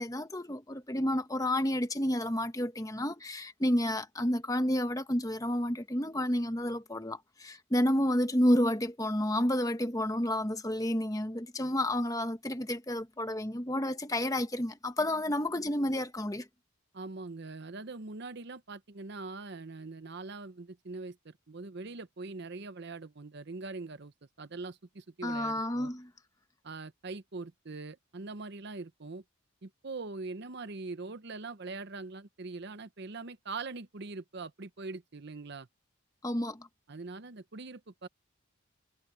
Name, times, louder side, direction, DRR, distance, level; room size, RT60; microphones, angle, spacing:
voice 1, 0.0-16.5 25.2-26.1 36.2-36.7, left 1 dB, 15° left, 1.2 m, -30 dB
voice 2, 16.9-25.9 26.6-29.2 29.6-35.7 36.9-38.1, right 3 dB, 50° right, 0.8 m, -42 dB
head